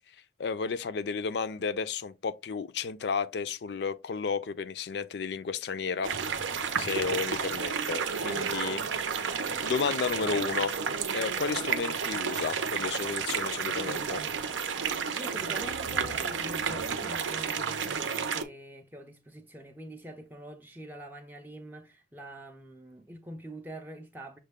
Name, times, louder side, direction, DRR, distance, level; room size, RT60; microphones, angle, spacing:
voice 1, 0.4-6.4 6.8-8.9 9.2-10.8 11.1-14.2, left 5 dB, 60° left, 0.4 m, -32 dB
sound 1, 6.0-18.4, right 6 dB, 85° right, 0.6 m, -31 dB
voice 2, 15.2-24.4, equal, 10° right, 0.4 m, -44 dB
6.4 x 2.2 x 3.4 m
head